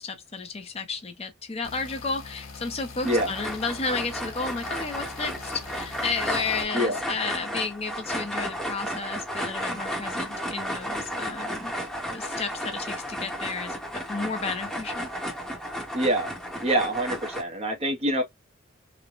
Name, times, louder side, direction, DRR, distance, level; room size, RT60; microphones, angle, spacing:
voice 1, 0.0-11.7 12.1-15.1, left 4 dB, 30° left, 0.6 m, -32 dB
sound 1, 1.6-6.6, left 4 dB, 75° left, 0.8 m, -43 dB
sound 2, 3.0-17.4, equal, 5° left, 0.9 m, -33 dB
voice 2, 15.9-16.3 16.6-18.2, right 1 dB, 30° right, 0.7 m, -25 dB
3.1 x 2.1 x 2.4 m
head